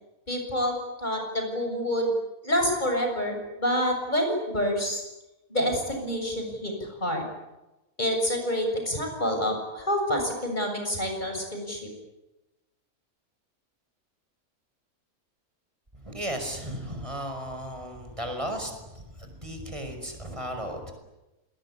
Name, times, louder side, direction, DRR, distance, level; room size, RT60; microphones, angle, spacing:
voice 1, 0.3-2.1 2.4-5.0 5.5-7.2 8.0-11.8, equal, 30° left, 3 dB, 7.3 m, -27 dB
voice 2, 16.0-20.9, equal, 20° right, 6 dB, 5.6 m, -35 dB
27.5 x 21.0 x 9.9 m, 1.0 s
omnidirectional pair, 1.5 m